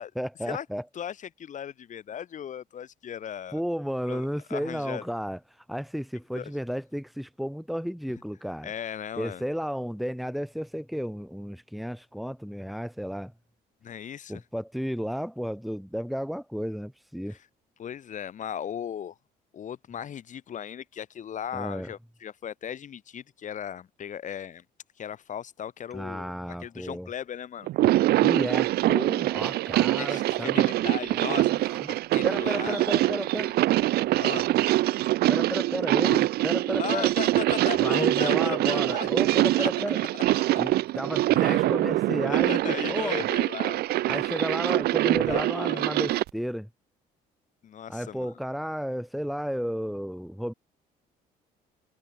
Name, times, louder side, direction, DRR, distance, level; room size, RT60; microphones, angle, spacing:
voice 1, 0.2-0.8 3.5-5.4 5.7-8.7 9.2-13.3 14.3-17.4 21.5-21.9 25.9-27.1 28.2-30.7 31.0-31.8 32.2-33.5 35.3-37.1 37.8-40.0 40.6-42.6 42.9-43.3 44.1-46.7 47.9-50.5, equal, ahead, 5.3 m, -33 dB
voice 2, 0.9-3.6 4.1-5.1 6.3-6.5 8.6-9.4 13.8-14.4 17.3-17.4 17.8-19.2 19.5-24.6 25.0-26.3 26.6-27.7 30.0-31.5 31.9-32.8 34.2-34.5 36.8-39.1 39.4-39.7 41.3-41.7 42.3-44.2 45.3-46.0 47.6-48.3, left 9 dB, 45° left, 2.5 m, -37 dB
sound 1, 27.7-46.3, right 16 dB, 70° right, 0.7 m, -24 dB
cardioid pair, 110°, 17 cm